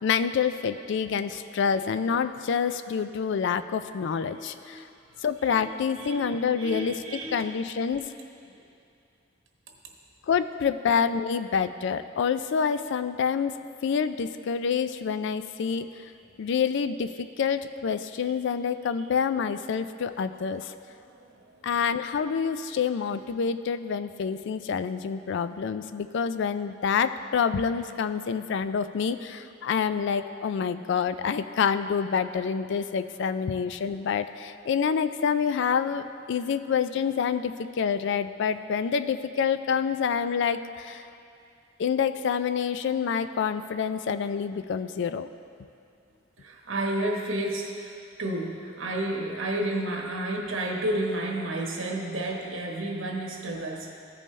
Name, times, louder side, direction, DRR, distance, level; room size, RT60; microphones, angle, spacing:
voice 1, 0.0-4.8 5.2-8.0 10.3-15.9 16.4-20.7 21.6-36.0 36.3-41.0 41.8-45.3, left 6 dB, 65° left, 11 dB, 0.3 m, -27 dB
voice 2, 1.1-1.8 4.1-4.8 5.4-7.6 8.4-8.5 11.0-11.1 18.2-18.4 18.8-19.1 20.9-21.6 46.4-53.9, right 1 dB, 90° right, 0 dB, 1.2 m, -32 dB
14.5 x 5.3 x 3.2 m, 2.5 s
head